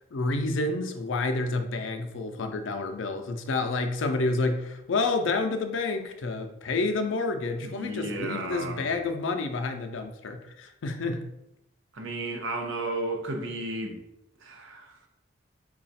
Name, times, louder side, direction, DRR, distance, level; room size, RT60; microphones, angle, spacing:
voice 1, 0.1-11.2, left 3 dB, 80° left, 6 dB, 0.5 m, -29 dB
voice 2, 7.6-9.0 11.9-14.0 14.4-14.9, right 2 dB, 85° right, 3 dB, 0.7 m, -33 dB
3.8 x 2.3 x 4.1 m, 0.86 s
head